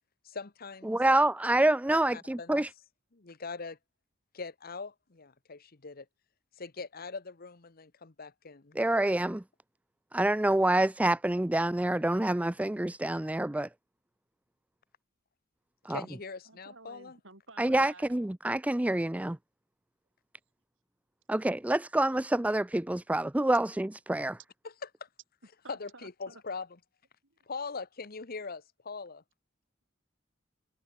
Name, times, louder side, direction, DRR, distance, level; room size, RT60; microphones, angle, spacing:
voice 1, 0.2-1.0 1.9-2.6 3.1-3.8 4.3-6.1 6.5-8.8 15.9-17.2 24.6-25.1 25.7-26.8 27.4-29.2, left 4 dB, 50° left, 1.1 m, -42 dB
voice 2, 0.9-2.7 8.8-9.4 10.1-13.7 15.8-16.0 17.6-19.4 21.3-24.4, right 1 dB, 5° right, 0.4 m, -27 dB
voice 3, 16.5-18.0 25.6-26.4 27.2-27.4, right 3 dB, 70° right, 6.8 m, -53 dB
head